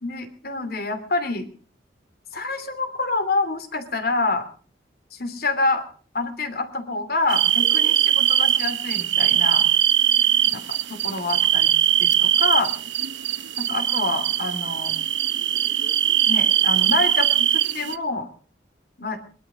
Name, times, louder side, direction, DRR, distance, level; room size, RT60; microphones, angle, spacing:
voice 1, 0.0-1.5 2.3-4.5 5.1-5.9 6.1-9.7 10.5-11.7 12.0-12.7 13.6-14.9 16.2-18.3 19.0-19.2, left 3 dB, 55° left, 8 dB, 2.8 m, -27 dB
sound 1, 7.3-18.0, right 11 dB, 80° right, 0.9 m, -21 dB
22.5 x 12.0 x 5.0 m, 0.42 s
head